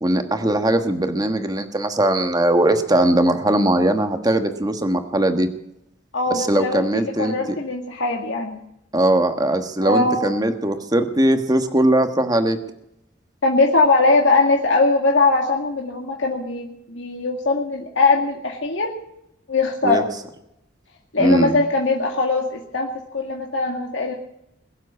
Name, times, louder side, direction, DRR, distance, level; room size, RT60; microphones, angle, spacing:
voice 1, 0.0-5.5 6.3-7.4 8.9-12.6 19.8-20.0 21.2-21.6, right 1 dB, 20° right, 7 dB, 1.3 m, -20 dB
voice 2, 6.1-8.6 9.8-10.3 13.4-18.9 19.5-20.1 21.1-24.1, left 3 dB, 75° left, 0 dB, 2.0 m, -20 dB
21.5 x 7.5 x 8.3 m, 0.79 s
head